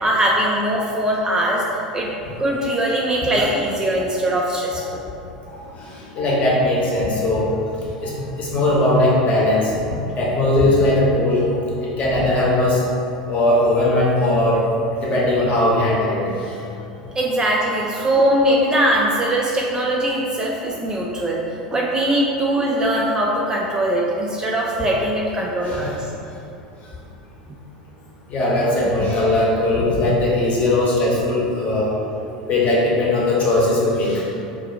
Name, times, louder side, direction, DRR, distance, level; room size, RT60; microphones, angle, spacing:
voice 1, 0.0-1.6 1.9-2.1 2.4-5.0 17.1-21.4 21.7-26.0 28.6-28.7 29.0-29.1, right 1 dB, 15° right, -3 dB, 0.3 m, -21 dB
voice 2, 6.1-7.5 8.0-8.1 8.4-9.7 10.2-11.4 11.8-12.8 13.3-14.6 15.0-16.2 25.6-25.9 28.3-31.9 32.5-34.2, left 1 dB, 35° left, -5 dB, 0.8 m, -19 dB
2.5 x 2.3 x 3.8 m, 2.6 s
figure-of-eight pair, 80°, 4 cm